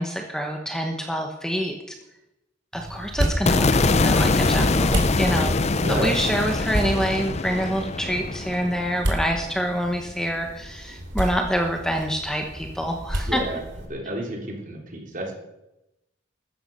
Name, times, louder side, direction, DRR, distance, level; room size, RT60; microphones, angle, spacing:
voice 1, 0.0-1.9 2.7-5.5 5.9-13.4, equal, 5° left, 3 dB, 1.1 m, -26 dB
sound 1, 2.7-13.9, right 1 dB, 70° right, 3.0 m, -32 dB
sound 2, 3.5-9.7, left 3 dB, 35° left, 0.5 m, -23 dB
voice 2, 5.7-6.2 13.3-15.3, right 1 dB, 45° right, 0 dB, 3.5 m, -30 dB
14.5 x 13.0 x 5.4 m, 0.94 s
head